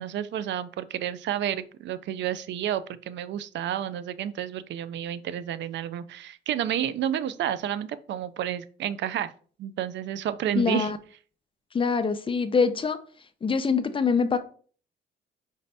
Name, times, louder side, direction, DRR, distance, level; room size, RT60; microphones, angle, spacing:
voice 1, 0.0-9.3 9.6-10.9, right 10 dB, 65° right, 15 dB, 0.4 m, -30 dB
voice 2, 10.6-11.0 11.7-13.0 13.4-14.4, left 5 dB, 25° left, 10 dB, 0.5 m, -24 dB
5.0 x 2.6 x 3.3 m, 0.43 s
cardioid pair, 90°, 20 cm